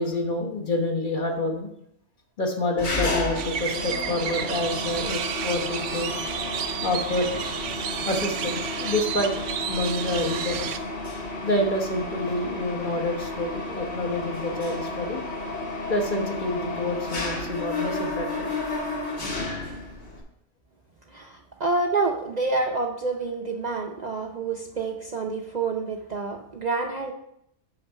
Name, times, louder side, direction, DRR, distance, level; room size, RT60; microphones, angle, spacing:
voice 1, 0.0-1.7 2.4-6.1 6.8-7.4 8.1-9.3 9.7-10.7 11.4-15.2 15.9-18.5, left 1 dB, 45° left, 2 dB, 1.2 m, -27 dB
Mechanisms, 2.8-20.2, left 2 dB, 65° left, 1.9 m, -32 dB
sound 1, 3.4-10.8, right 8 dB, 80° right, 0.9 m, -32 dB
voice 2, 21.1-27.1, right 3 dB, 45° right, 2 dB, 0.6 m, -28 dB
6.6 x 5.7 x 5.5 m, 0.76 s
omnidirectional pair, 1.2 m